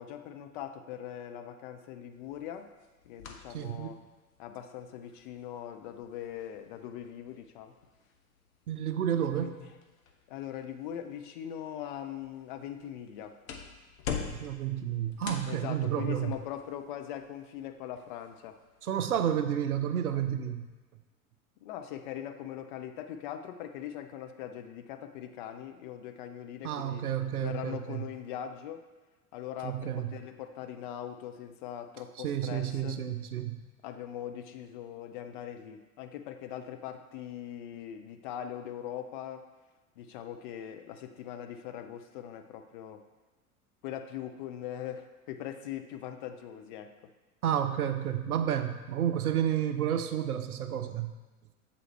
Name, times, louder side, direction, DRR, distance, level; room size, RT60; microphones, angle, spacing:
voice 1, 0.0-2.7 3.0-4.0 4.4-7.7 9.2-9.7 10.3-13.4 15.5-18.6 20.1-20.2 21.6-27.0 27.4-28.8 29.3-33.0 33.8-39.5 40.0-43.0 43.8-47.1, left 10 dB, 40° left, 7 dB, 0.4 m, -41 dB
sound 1, 2.1-19.5, left 6 dB, 65° left, 0.8 m, -47 dB
voice 2, 3.5-4.0 8.7-9.6 14.3-16.3 18.8-20.7 26.6-28.0 29.6-30.1 32.2-33.6 47.4-51.1, right 10 dB, 80° right, 8 dB, 0.6 m, -31 dB
7.6 x 4.1 x 3.1 m, 1.2 s
figure-of-eight pair, 85°, 44 cm